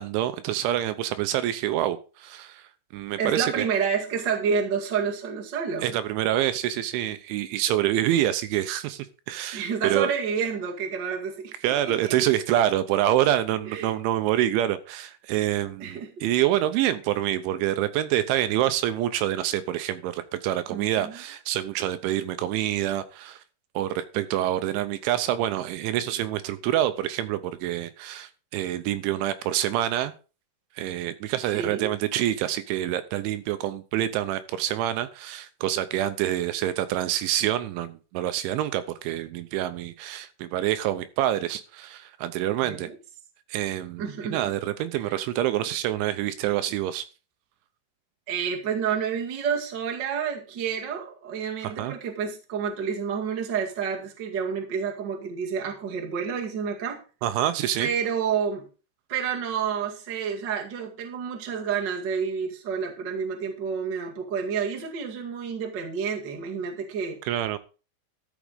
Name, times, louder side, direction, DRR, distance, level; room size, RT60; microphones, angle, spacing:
voice 1, 0.0-3.7 5.8-10.1 11.6-23.4 23.8-30.1 30.8-42.9 43.5-47.1 51.6-51.9 57.2-57.9 67.2-67.6, right 12 dB, 80° right, 12 dB, 3.0 m, -26 dB
voice 2, 3.2-5.9 9.5-12.2 13.7-13.9 15.8-16.2 20.7-21.2 31.5-31.9 42.6-42.9 44.0-44.5 44.9-45.0 48.3-57.0 57.8-58.7 59.1-67.2, right 6 dB, 50° right, 1 dB, 1.3 m, -29 dB
13.5 x 6.2 x 5.1 m, 0.34 s
omnidirectional pair, 5.7 m